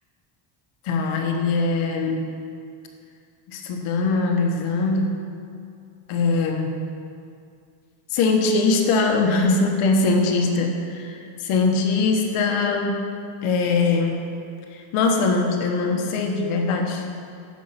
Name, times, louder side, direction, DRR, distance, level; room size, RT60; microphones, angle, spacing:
voice 1, 0.8-2.3 3.5-5.2 6.1-6.8 8.1-13.0 13.4-14.2 14.7-17.0, left 3 dB, 80° left, 3 dB, 1.4 m, -22 dB
13.0 x 5.4 x 5.8 m, 2.4 s
cardioid pair, 130°, 50 cm